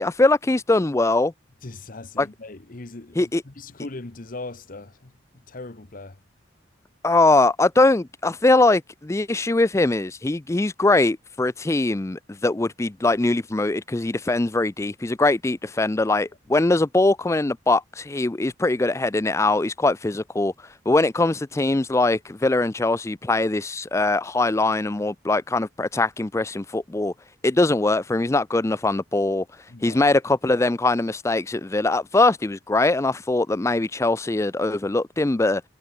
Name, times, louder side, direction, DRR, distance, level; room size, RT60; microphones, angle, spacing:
voice 1, 0.0-1.3 2.2-2.3 3.2-3.4 7.0-20.5 20.9-27.1 27.4-29.4 29.8-35.6, left 2 dB, 15° left, 0.4 m, -21 dB
voice 2, 1.6-6.2 29.7-30.0, left 2 dB, 45° left, 1.0 m, -39 dB
head